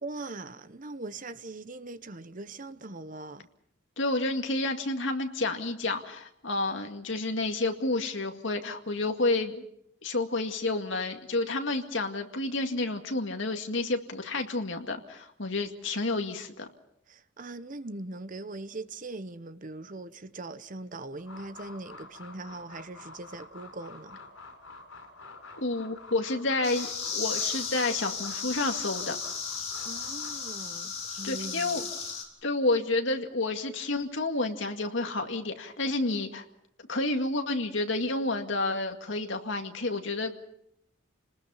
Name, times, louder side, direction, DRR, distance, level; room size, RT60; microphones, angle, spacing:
voice 1, 0.0-3.5 17.1-24.2 29.8-31.9, right 2 dB, 40° right, 1.0 m, -41 dB
voice 2, 4.0-9.6 10.0-16.7 25.6-29.2 31.2-31.8 32.4-36.4 36.9-40.4, left 2 dB, 65° left, 2.2 m, -30 dB
sound 1, 21.2-30.5, left 3 dB, 90° left, 5.9 m, -48 dB
sound 2, 26.6-32.2, left 5 dB, 35° left, 4.5 m, -35 dB
30.0 x 20.0 x 5.7 m
head